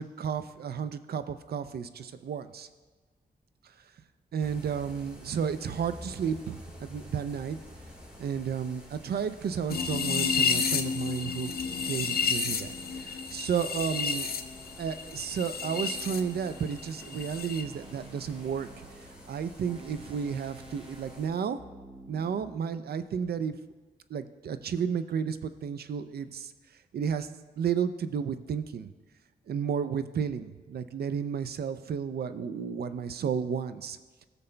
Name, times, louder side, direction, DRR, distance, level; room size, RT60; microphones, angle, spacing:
voice 1, 0.0-2.7 4.3-7.6 8.2-14.3 14.8-18.8 19.3-21.6 22.1-23.6 24.1-26.5 26.9-27.3 27.6-28.9 29.5-34.0, right 7 dB, 70° right, 12 dB, 0.4 m, -32 dB
sound 1, 4.4-21.3, equal, 5° right, 2.5 m, -50 dB
sound 2, 9.7-16.2 16.5-17.6, left 6 dB, 65° left, 0.6 m, -31 dB
sound 3, 11.6-15.0 15.6-22.4, right 1 dB, 30° right, 1.1 m, -51 dB
16.0 x 6.7 x 2.2 m, 1.3 s
cardioid pair, 70°, 17 cm